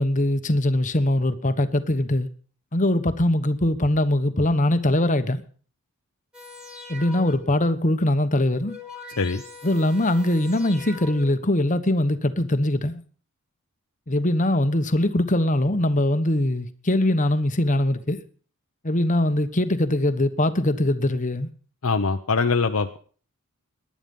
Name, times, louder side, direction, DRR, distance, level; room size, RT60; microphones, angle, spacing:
voice 1, 0.0-2.3 2.7-5.4 6.9-8.8 9.6-13.0 14.1-18.2 18.8-21.5, left 1 dB, 35° left, 1.1 m, -22 dB
sound 1, 6.3-7.7 8.4-11.6 12.3-12.4, left 3 dB, 5° right, 2.6 m, -42 dB
voice 2, 21.8-23.0, left 4 dB, 70° left, 0.8 m, -23 dB
19.0 x 11.0 x 5.4 m
head